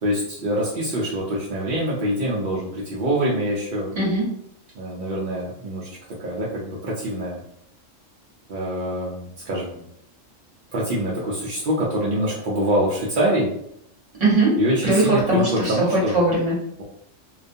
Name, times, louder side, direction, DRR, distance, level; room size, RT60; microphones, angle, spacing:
voice 1, 0.0-3.9 4.8-5.9 6.2-7.4 8.5-9.8 10.7-13.5 14.6-16.2, right 1 dB, 65° right, -5 dB, 0.5 m, -25 dB
voice 2, 14.2-14.6 14.8-16.6, right 2 dB, 30° right, -5 dB, 0.9 m, -20 dB
2.3 x 2.2 x 2.6 m, 0.74 s
omnidirectional pair, 1.4 m